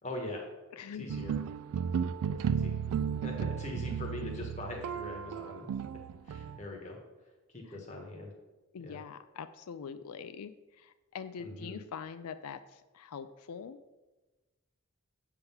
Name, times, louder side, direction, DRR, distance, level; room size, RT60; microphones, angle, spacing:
voice 1, 0.0-0.4 1.0-1.4 2.3-2.7 3.2-5.7 6.2-7.0 7.5-8.3 8.8-9.0 11.4-11.8, left 2 dB, 30° left, 0 dB, 1.2 m, -42 dB
voice 2, 0.7-1.1 7.7-7.8 8.7-13.8, left 6 dB, 90° left, 11 dB, 0.4 m, -44 dB
sound 1, 1.1-6.6, right 7 dB, 85° right, 0.3 m, -34 dB
7.9 x 3.7 x 5.8 m, 1.2 s
head